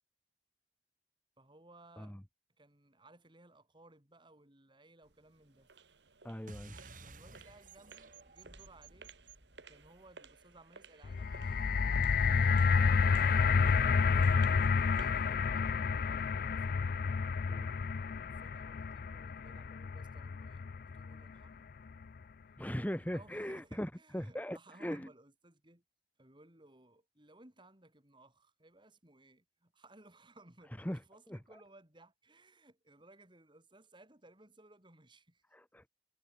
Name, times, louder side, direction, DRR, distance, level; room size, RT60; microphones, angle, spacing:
voice 1, 1.4-2.2 2.6-5.7 7.0-9.2 9.7-11.6 12.3-14.4 15.0-16.8 18.3-21.7 23.1-25.8 26.2-35.4, right 2 dB, 30° right, 4.3 m, -60 dB
sound 1, 5.0-15.3, right 4 dB, 85° right, 2.3 m, -58 dB
voice 2, 6.2-6.7 17.5-17.7 22.6-25.1 30.8-31.0 31.3-31.4 35.5-35.9, equal, 10° left, 1.5 m, -39 dB
sound 2, 6.5-11.4, right 3 dB, 50° right, 6.6 m, -55 dB
sound 3, 11.0-21.3 22.0-22.1, left 5 dB, 55° left, 0.4 m, -30 dB
head